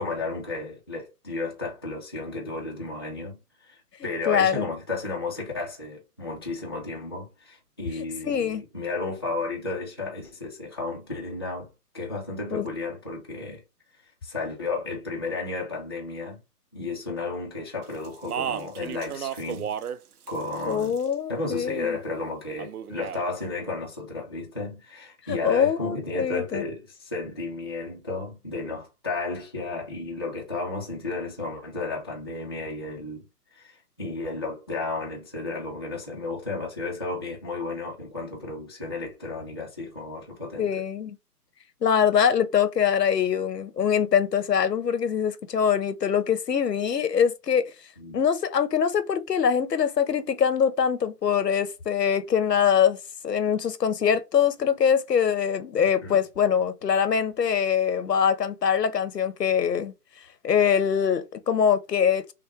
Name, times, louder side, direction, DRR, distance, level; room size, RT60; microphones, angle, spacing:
voice 1, 0.0-3.7 4.0-11.7 11.9-13.6 14.2-16.4 16.7-19.8 20.3-21.0 21.3-33.2 33.5-40.7 48.0-48.2 56.0-56.2, left 3 dB, 15° left, 0.5 m, -33 dB
voice 2, 4.3-4.7 8.0-8.6 12.5-12.7 20.6-22.0 25.3-26.6 40.6-41.2 41.8-47.7 48.1-53.0 53.2-59.9 60.4-62.3, left 7 dB, 85° left, 0.9 m, -23 dB
Speech, 18.0-20.0 20.3-21.1 22.6-23.2, right 9 dB, 70° right, 0.6 m, -33 dB
5.9 x 2.2 x 3.1 m
hypercardioid pair, 150°, 47 cm